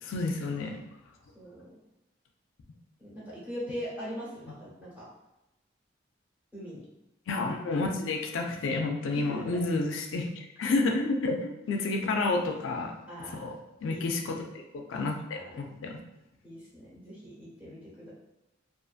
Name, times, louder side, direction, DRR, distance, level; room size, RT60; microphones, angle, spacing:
voice 1, 0.0-0.8 7.3-13.0 13.3-13.5 13.8-16.0, left 3 dB, 80° left, 3 dB, 0.3 m, -30 dB
voice 2, 1.3-1.7 3.0-5.0 6.5-6.8 9.1-9.6 13.1-13.5 13.9-14.0 15.3-15.7 16.4-18.1, equal, 10° right, -9 dB, 1.0 m, -41 dB
2.5 x 2.4 x 2.4 m, 0.94 s
head